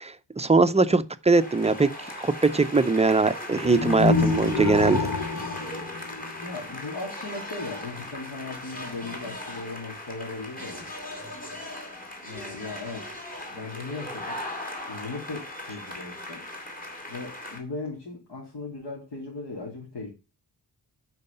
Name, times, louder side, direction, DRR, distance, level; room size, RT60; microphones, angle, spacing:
voice 1, 0.4-1.9 2.2-5.1, right 3 dB, 15° right, 0.5 m, -21 dB
sound 1, 1.3-17.6, left 1 dB, 20° left, 2.4 m, -38 dB
sound 2, 3.6-6.8, left 4 dB, 45° left, 0.9 m, -27 dB
voice 2, 6.4-10.9 12.2-13.1 13.5-14.4 14.9-16.4 17.1-20.1, left 3 dB, 65° left, 3.1 m, -37 dB
11.0 x 4.8 x 5.3 m
wide cardioid pair, 175°, 41 cm